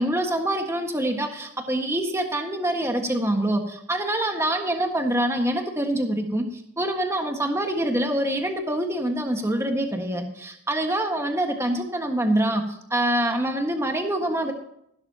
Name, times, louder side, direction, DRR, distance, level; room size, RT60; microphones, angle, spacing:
voice 1, 0.0-14.5, right 1 dB, 10° right, 4 dB, 1.5 m, -25 dB
16.0 x 12.0 x 2.9 m, 0.74 s
head